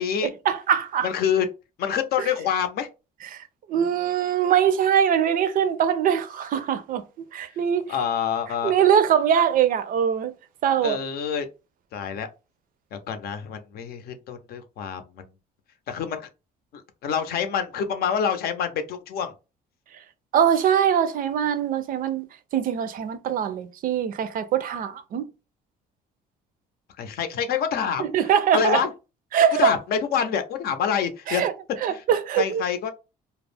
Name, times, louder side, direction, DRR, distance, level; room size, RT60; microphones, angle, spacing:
voice 1, 0.2-1.1 3.3-3.4 3.7-7.0 7.3-7.9 8.6-10.3 10.6-11.0 20.3-22.3 22.5-25.3 28.0-28.8 29.3-29.7 31.3-31.5 31.8-32.6, right 8 dB, 55° right, 0.4 m, -22 dB
voice 2, 1.0-1.5 1.8-2.9 7.9-8.7 10.8-11.5 11.9-12.3 12.9-15.2 15.9-16.2 16.7-19.3 27.0-28.2 28.5-28.9 29.6-31.4 31.9-32.0 32.4-32.9, left 7 dB, 65° left, 0.6 m, -26 dB
2.3 x 2.0 x 3.3 m
cardioid pair, 110°, 17 cm